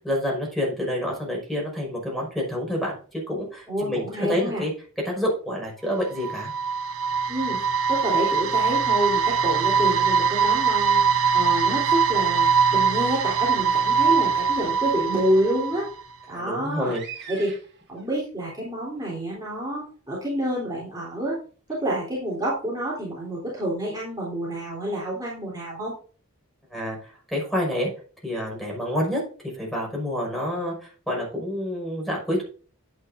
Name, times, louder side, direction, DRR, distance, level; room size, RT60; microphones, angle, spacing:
voice 1, 0.0-4.7 5.0-6.5 16.3-17.3 26.7-27.9 28.2-32.4, equal, ahead, -2 dB, 5.4 m, -28 dB
voice 2, 3.7-4.6 7.3-7.6 7.9-11.0 11.3-15.9 16.3-16.9 17.3-17.5 17.9-21.4 21.7-25.9, right 1 dB, 15° right, -6 dB, 3.6 m, -28 dB
sound 1, 5.9-16.0, right 6 dB, 70° right, 1.1 m, -22 dB
sound 2, 16.7-18.1 19.0-19.1 19.8-19.9, right 7 dB, 50° right, 2.2 m, -41 dB
10.5 x 9.5 x 2.7 m, 0.40 s
head